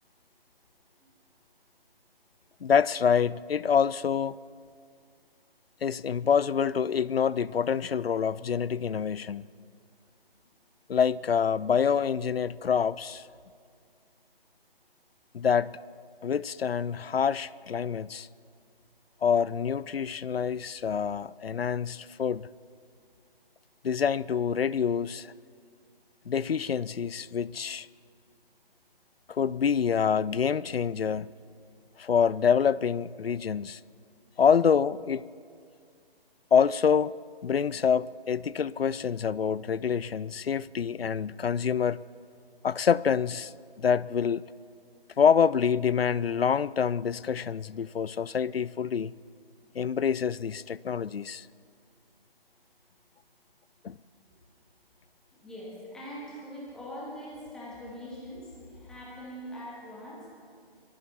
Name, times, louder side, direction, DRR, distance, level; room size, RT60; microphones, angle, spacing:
voice 1, 2.6-4.3 5.8-9.4 10.9-13.2 15.3-15.7 16.2-18.3 19.2-22.5 23.8-25.3 26.3-27.9 29.3-31.3 32.0-33.8 34.4-35.3 36.5-37.1 37.4-42.0 42.6-44.4 45.2-49.1 49.7-51.5 53.8-54.0, left 7 dB, 80° left, 21 dB, 0.5 m, -26 dB
voice 2, 55.3-60.2, equal, ahead, -8 dB, 2.1 m, -42 dB
25.0 x 19.5 x 2.8 m, 2.2 s
figure-of-eight pair, 155°, 30 cm